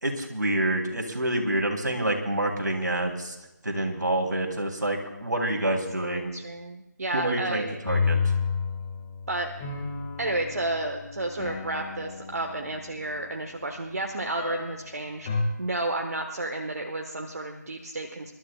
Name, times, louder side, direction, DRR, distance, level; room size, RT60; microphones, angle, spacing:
voice 1, 0.0-3.3 3.6-6.3 7.1-8.2, right 1 dB, 70° right, 2 dB, 2.8 m, -27 dB
voice 2, 6.0-7.9 9.3-9.5 10.2-15.3 15.6-18.3, right 2 dB, 55° right, 3 dB, 1.2 m, -31 dB
sound 1, 7.7-13.3 14.4-14.9 15.3-15.4, left 5 dB, 15° left, 1.1 m, -31 dB
27.5 x 12.5 x 2.2 m, 0.93 s
figure-of-eight pair, 160°, 10 cm